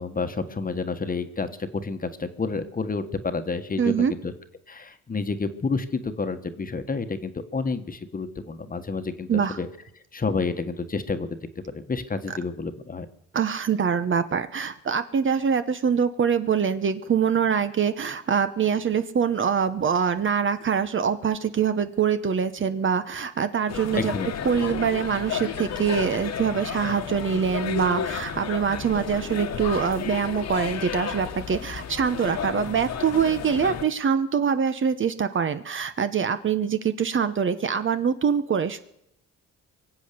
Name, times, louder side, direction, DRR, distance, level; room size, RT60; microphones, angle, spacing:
voice 1, 0.0-1.5 1.8-4.3 4.7-9.7 10.1-11.3 11.7-13.1 24.0-24.3 24.6-24.7, left 4 dB, 30° left, 9 dB, 1.4 m, -29 dB
voice 2, 3.8-4.1 9.3-9.6 13.3-24.1 24.4-38.8, right 7 dB, 40° right, 11 dB, 1.0 m, -24 dB
sound 1, 23.7-33.8, left 8 dB, 60° left, 1.5 m, -32 dB
23.5 x 8.0 x 6.8 m, 0.78 s
cardioid pair, 90°, 30 cm